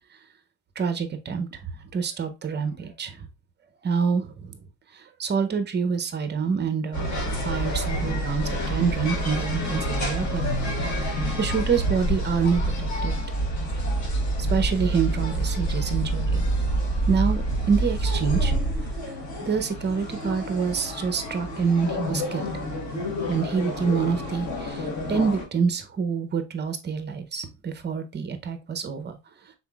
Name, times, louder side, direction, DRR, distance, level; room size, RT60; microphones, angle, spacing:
voice 1, 0.8-3.3 3.8-4.6 4.9-7.2 7.4-11.1 11.4-13.1 14.5-16.6 17.1-18.5 19.1-19.2 19.5-22.5 23.3-29.2, right 6 dB, 25° right, 0.6 m, -27 dB
sound 1, 6.9-25.4, right 1 dB, 40° left, 1.3 m, -27 dB
5.6 x 3.9 x 2.3 m
cardioid pair, 155°, 44 cm